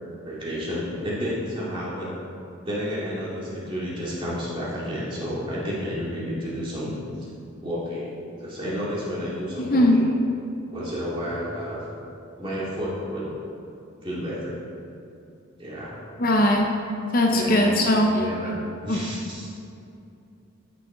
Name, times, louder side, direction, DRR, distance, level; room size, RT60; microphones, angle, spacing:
voice 1, 0.2-2.1 2.7-7.0 7.6-10.1 10.7-11.8 12.4-13.2 14.0-14.6 15.6-16.0 17.3-18.5 18.8-19.5, equal, 25° right, -7 dB, 2.3 m, -31 dB
voice 2, 9.6-10.0 16.2-16.7 17.1-18.2 18.9-19.1, left 1 dB, 45° left, 1 dB, 0.7 m, -20 dB
13.0 x 6.2 x 3.9 m, 2.6 s
head